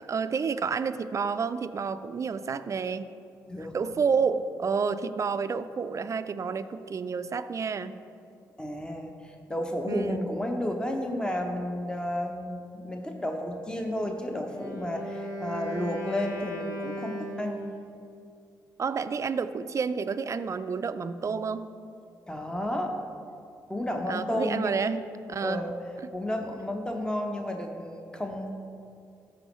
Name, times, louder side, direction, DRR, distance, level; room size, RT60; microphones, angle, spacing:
voice 1, 0.0-3.1 3.7-8.0 9.9-10.2 18.8-21.7 24.1-25.0 25.3-25.7, right 5 dB, 40° right, 12 dB, 0.4 m, -29 dB
voice 2, 8.6-17.7 22.3-22.9 23.7-24.8 25.4-25.7 26.1-28.5, left 1 dB, 10° left, 3 dB, 0.7 m, -32 dB
Wind instrument woodwind instrument, 14.4-17.9, equal, 50° left, 1.5 m, -37 dB
13.0 x 4.3 x 3.1 m, 2.6 s
supercardioid pair, 55°, 8 cm